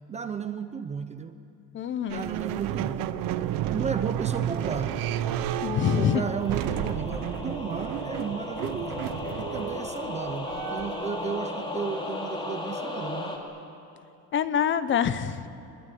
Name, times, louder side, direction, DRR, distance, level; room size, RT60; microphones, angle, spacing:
voice 1, 0.1-1.3 2.0-3.1 3.7-4.9 5.9-9.0 9.4-13.4, right 6 dB, 15° right, 9 dB, 0.5 m, -34 dB
voice 2, 1.7-2.3 5.6-6.2 14.3-15.5, left 8 dB, 30° left, 13 dB, 0.7 m, -25 dB
sound 1, 2.1-11.2, right 11 dB, 50° right, 1.0 m, -32 dB
sound 2, 3.2-13.4, left 1 dB, 10° left, 2.6 m, -36 dB
25.5 x 21.5 x 9.1 m, 2.9 s
cardioid pair, 175°, 43 cm